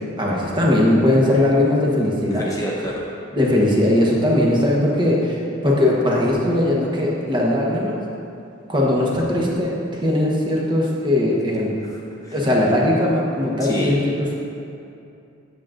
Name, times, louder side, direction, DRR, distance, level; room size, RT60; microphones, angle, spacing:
voice 1, 0.2-2.5 3.3-8.0 8.7-11.8 12.3-14.3, left 1 dB, 25° right, -4 dB, 1.0 m, -19 dB
voice 2, 2.3-3.1 11.9-12.3 13.6-14.0, equal, 15° left, -4 dB, 0.5 m, -28 dB
8.6 x 7.5 x 2.5 m, 2.6 s
head